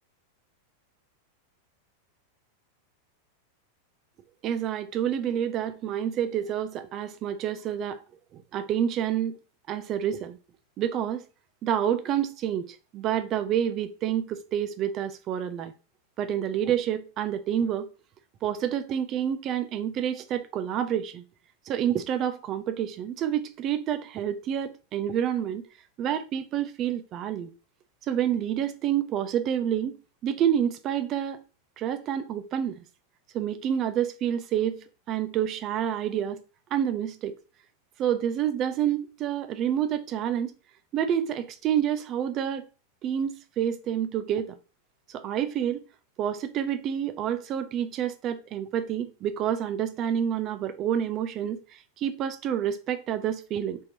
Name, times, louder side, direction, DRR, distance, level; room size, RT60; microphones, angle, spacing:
voice 1, 4.4-8.0 8.3-9.4 9.7-10.4 10.8-11.2 11.6-15.7 16.2-17.9 18.4-21.2 21.7-25.6 26.0-27.5 28.1-30.0 30.2-31.4 31.8-32.8 33.3-36.4 36.7-37.3 38.0-40.5 40.9-42.6 43.0-44.6 45.1-45.8 46.2-53.8, right 9 dB, 35° right, 0.4 m, -28 dB
3.6 x 2.9 x 2.8 m
figure-of-eight pair, 90°, 0 cm